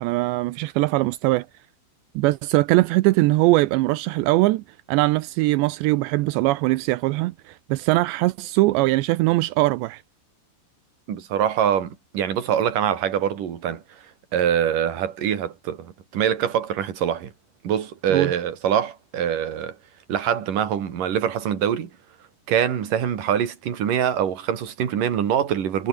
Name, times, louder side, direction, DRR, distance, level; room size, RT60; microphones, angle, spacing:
voice 1, 0.0-1.5 2.2-10.0 18.1-18.3, right 19 dB, 80° right, 2.6 m, -21 dB
voice 2, 11.1-13.8 14.3-17.3 17.6-19.8 20.1-21.9 22.5-25.9, right 9 dB, 45° right, 3.8 m, -24 dB
omnidirectional pair, 5.8 m